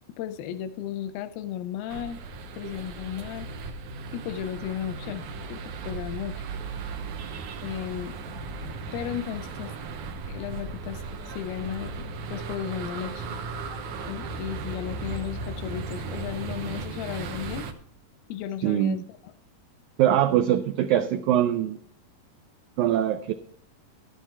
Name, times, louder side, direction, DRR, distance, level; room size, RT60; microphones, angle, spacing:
voice 1, 0.2-2.2 2.6-3.5 4.1-5.2 5.5-6.4 7.6-8.2 8.9-9.7 10.3-13.3 14.1-17.6 18.3-19.3, left 10 dB, 90° left, 10 dB, 2.5 m, -34 dB
sound 1, 1.9-17.7, right 4 dB, 70° right, 2.0 m, -36 dB
voice 2, 18.6-19.0 20.0-21.8 22.8-23.3, right 11 dB, 85° right, 7 dB, 1.7 m, -22 dB
12.5 x 8.2 x 4.4 m, 0.62 s
omnidirectional pair, 4.2 m